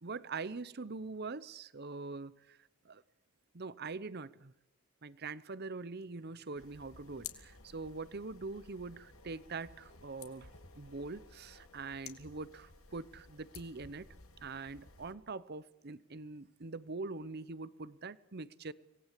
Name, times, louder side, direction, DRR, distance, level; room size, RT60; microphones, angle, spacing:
voice 1, 0.0-2.6 2.8-3.0 3.5-4.5 5.0-10.5 10.8-14.1 14.4-18.7, right 3 dB, 45° right, 0.8 m, -43 dB
sound 1, 6.6-15.1, left 6 dB, 75° left, 2.6 m, -54 dB
25.5 x 19.0 x 8.3 m
head